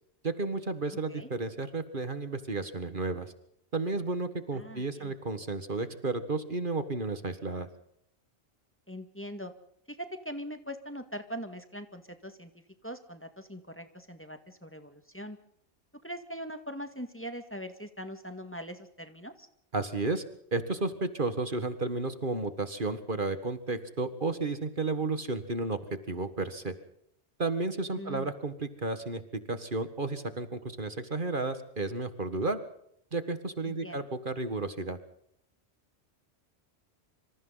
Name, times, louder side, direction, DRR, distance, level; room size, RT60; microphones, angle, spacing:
voice 1, 0.2-3.3 3.7-7.7 19.7-20.2 20.5-26.7 27.4-29.2 29.5-32.6 33.1-35.0, right 3 dB, 50° right, 10 dB, 1.9 m, -32 dB
voice 2, 4.5-5.1 8.9-9.5 9.9-12.5 12.8-15.4 16.0-19.5 28.0-28.3 33.7-34.0, equal, 10° left, 8 dB, 1.9 m, -41 dB
26.5 x 26.0 x 4.0 m, 0.71 s
omnidirectional pair, 1.1 m